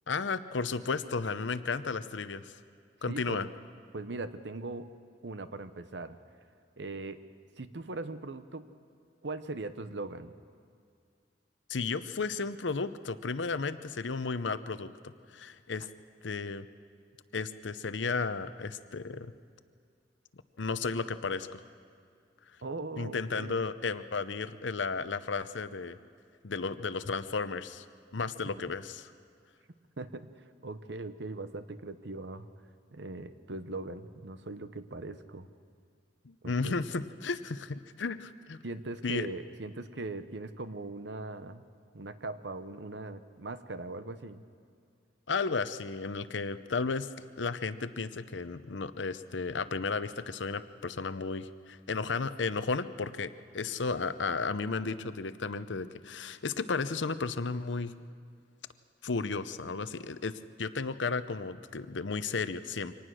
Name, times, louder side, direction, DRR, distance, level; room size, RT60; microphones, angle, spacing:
voice 1, 0.1-2.5 3.0-3.4 11.7-15.9 16.2-16.7 17.3-19.3 20.6-21.6 23.0-26.0 26.4-27.8 28.1-29.1 36.2-38.6 39.0-39.3 45.3-57.9 59.0-62.9, left 4 dB, 85° left, 13 dB, 0.8 m, -34 dB
voice 2, 3.1-3.5 3.9-4.9 5.2-6.2 6.8-7.2 7.6-8.7 9.2-10.3 22.6-23.5 30.0-30.3 30.6-32.5 32.9-35.5 36.4-36.7 38.6-41.6 41.9-44.4, right 2 dB, 70° right, 11 dB, 0.9 m, -40 dB
24.5 x 19.0 x 6.3 m, 2.3 s
head